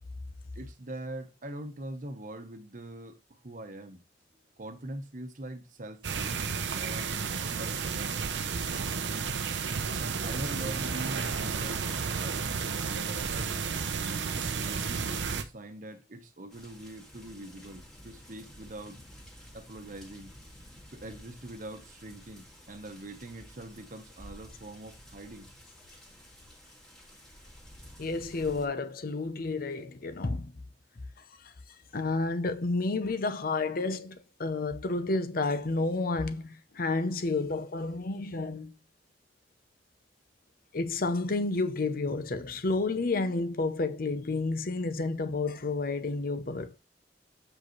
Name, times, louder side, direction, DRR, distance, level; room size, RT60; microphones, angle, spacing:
voice 1, 0.5-4.0 4.6-6.4 6.7-9.4 10.0-13.5 14.0-19.0 19.5-20.4 20.9-25.5 31.9-32.0, right 1 dB, 50° right, 1.0 m, -43 dB
sound 1, 6.0-15.4, right 5 dB, 90° right, 0.7 m, -32 dB
sound 2, 16.5-28.7, equal, 5° left, 1.9 m, -52 dB
voice 2, 28.0-30.5 31.9-38.7 40.7-46.8, left 3 dB, 55° left, 0.7 m, -30 dB
7.6 x 5.0 x 3.1 m
head